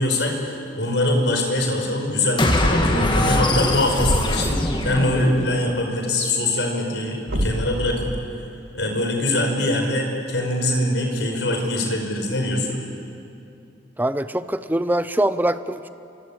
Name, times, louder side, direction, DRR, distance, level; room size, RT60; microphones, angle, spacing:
voice 1, 0.0-8.1 8.7-12.8, left 1 dB, 75° left, 2 dB, 5.4 m, -23 dB
sound 1, 2.4-5.7, left 1 dB, 25° left, 2.3 m, -22 dB
Thump thud, 3.9-4.6 7.3-7.8, equal, 80° right, 2.9 m, -24 dB
voice 2, 14.0-15.9, right 1 dB, 10° right, 12 dB, 0.7 m, -23 dB
28.5 x 24.0 x 8.7 m, 2.6 s
head